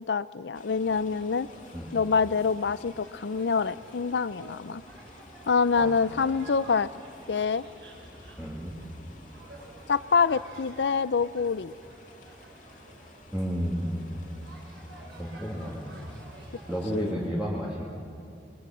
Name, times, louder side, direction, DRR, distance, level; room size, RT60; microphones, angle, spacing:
voice 1, 0.0-1.5 1.9-4.8 5.5-6.9 7.3-7.6 9.9-11.7 16.9-17.2, left 5 dB, 80° left, 17 dB, 0.5 m, -26 dB
sound 1, 0.5-17.1, left 2 dB, 45° left, 2.4 m, -53 dB
sound 2, 0.8-17.3, right 1 dB, 85° right, 6.2 m, -50 dB
voice 2, 8.4-8.8 13.3-14.2 14.9-16.2 16.7-17.9, equal, 5° right, -6 dB, 2.6 m, -32 dB
26.0 x 22.5 x 7.5 m, 2.5 s
head